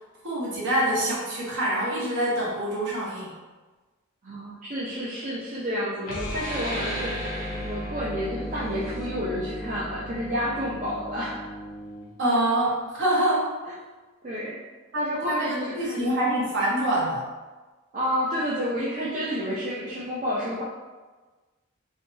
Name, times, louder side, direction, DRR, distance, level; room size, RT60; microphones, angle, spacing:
voice 1, 0.2-3.4 12.2-13.5 14.9-17.3, right 1 dB, 60° right, -6 dB, 0.9 m, -25 dB
voice 2, 4.2-7.2 7.6-11.5 14.2-14.6 15.0-16.2 17.9-20.6, equal, 35° right, -8 dB, 0.5 m, -30 dB
sound 1, 6.0-12.1, equal, 90° left, 0.6 m, -36 dB
sound 2, 6.4-11.5, right 1 dB, 85° right, 0.7 m, -38 dB
3.5 x 2.2 x 2.6 m, 1.3 s
head